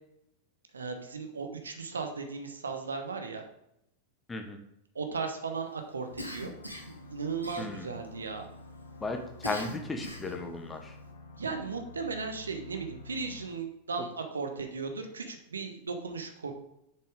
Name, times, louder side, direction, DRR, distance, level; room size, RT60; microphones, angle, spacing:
voice 1, 0.7-3.4 4.9-6.5 7.1-8.5 11.3-16.5, right 4 dB, 75° right, 5 dB, 1.0 m, -36 dB
sound 1, 6.1-13.5, left 2 dB, 70° left, 1.4 m, -49 dB
Cough, 6.2-7.0 7.4-8.1 9.4-10.4, left 1 dB, 85° left, 1.3 m, -40 dB
voice 2, 9.0-10.9, left 3 dB, 15° left, 4 dB, 1.1 m, -35 dB
6.9 x 5.8 x 4.8 m, 0.80 s
figure-of-eight pair, 90°, 0 cm